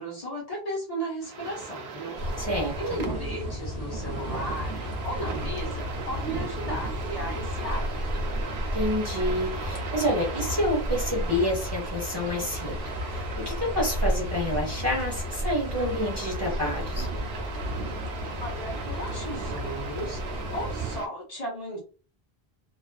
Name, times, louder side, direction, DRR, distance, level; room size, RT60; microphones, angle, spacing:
voice 1, 0.0-8.2 18.4-21.8, equal, 40° left, -3 dB, 0.9 m, -36 dB
sound 1, 1.2-21.1, right 5 dB, 70° right, 0.8 m, -37 dB
sound 2, 2.1-21.0, left 1 dB, 70° left, 0.9 m, -33 dB
voice 2, 2.4-2.8 8.7-17.1, left 1 dB, 25° right, -4 dB, 0.8 m, -28 dB
2.4 x 2.3 x 2.2 m, 0.35 s
omnidirectional pair, 1.1 m